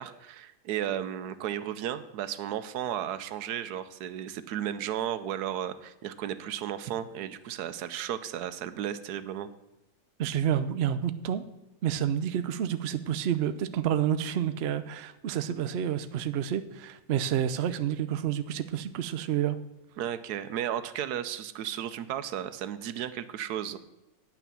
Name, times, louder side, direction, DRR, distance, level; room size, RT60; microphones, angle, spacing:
voice 1, 0.0-9.5 20.0-23.8, right 10 dB, 80° right, 13 dB, 1.2 m, -34 dB
voice 2, 10.2-11.4 11.8-19.6, right 10 dB, 60° right, 11 dB, 0.7 m, -29 dB
9.3 x 5.9 x 6.8 m, 0.96 s
omnidirectional pair, 1.7 m